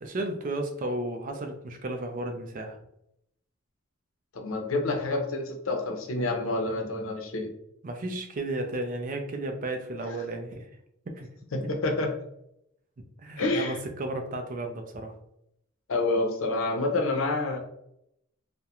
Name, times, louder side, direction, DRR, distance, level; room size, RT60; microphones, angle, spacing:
voice 1, 0.0-2.8 7.8-10.7 11.1-11.3 13.2-15.1, right 2 dB, 40° right, 5 dB, 0.4 m, -33 dB
voice 2, 4.3-7.5 11.5-12.1 13.4-13.8 15.9-17.6, left 2 dB, 85° left, 3 dB, 0.6 m, -28 dB
2.3 x 2.1 x 2.9 m, 0.77 s
head